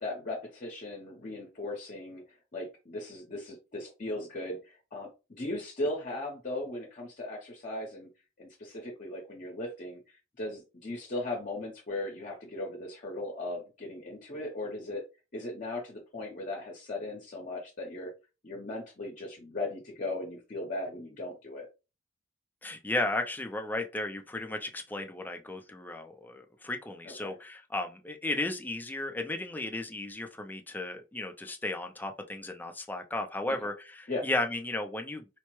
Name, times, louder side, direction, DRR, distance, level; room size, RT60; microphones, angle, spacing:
voice 1, 0.0-8.1 8.4-15.0 15.3-18.1 18.4-21.7 27.0-27.3 34.1-34.3, left 2 dB, 40° left, 0.7 m, -38 dB
voice 2, 22.6-35.3, left 2 dB, 10° left, 0.4 m, -34 dB
4.4 x 2.1 x 3.0 m
head